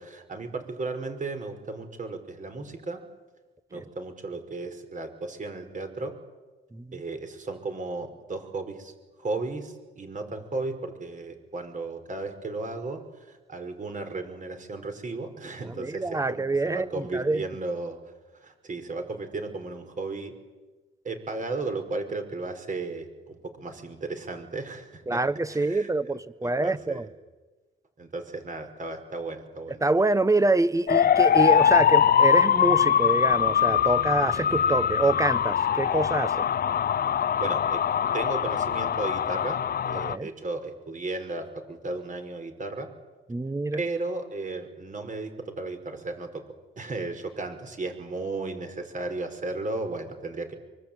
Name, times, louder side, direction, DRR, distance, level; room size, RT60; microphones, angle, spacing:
voice 1, 0.0-3.0 3.7-6.1 6.9-8.9 9.2-18.0 18.4-20.3 21.0-25.2 25.5-27.1 28.0-29.8 34.7-34.8 37.4-37.8 38.1-42.9 43.7-46.4 46.8-50.5, right 3 dB, 40° right, 6 dB, 5.5 m, -35 dB
voice 2, 15.8-17.4 25.1-27.1 29.8-36.5 40.1-40.3 43.3-43.8, right 2 dB, 15° right, 15 dB, 1.1 m, -26 dB
sound 1, 30.9-40.2, left 8 dB, 50° left, 0.8 m, -22 dB
24.0 x 24.0 x 9.0 m, 1.2 s
cardioid pair, 90°, 20 cm